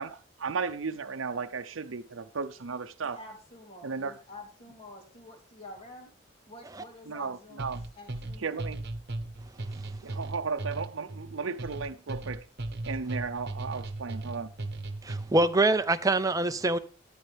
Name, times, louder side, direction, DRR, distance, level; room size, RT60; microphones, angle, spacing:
voice 1, 0.0-3.2 3.8-4.1 7.1-7.8 8.4-8.8 10.0-12.5 12.8-14.5, right 5 dB, 80° right, 0.7 m, -35 dB
voice 2, 3.1-6.1 6.5-7.6 7.9-8.6, left 2 dB, 30° left, 3.0 m, -48 dB
sound 1, 7.6-15.5, right 2 dB, 55° right, 1.1 m, -37 dB
voice 3, 15.0-16.8, right 2 dB, 20° right, 0.6 m, -25 dB
13.5 x 9.5 x 3.4 m
head